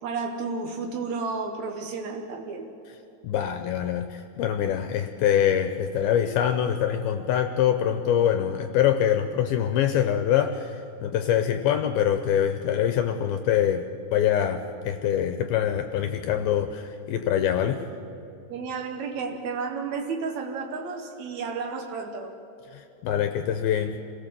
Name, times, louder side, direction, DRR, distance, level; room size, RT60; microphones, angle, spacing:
voice 1, 0.0-2.7 18.5-22.3, right 4 dB, 75° right, 3 dB, 1.7 m, -32 dB
voice 2, 3.2-13.8 14.1-17.8 22.7-24.0, left 9 dB, 80° left, 8 dB, 2.3 m, -24 dB
26.5 x 17.0 x 7.6 m, 2.9 s
omnidirectional pair, 4.9 m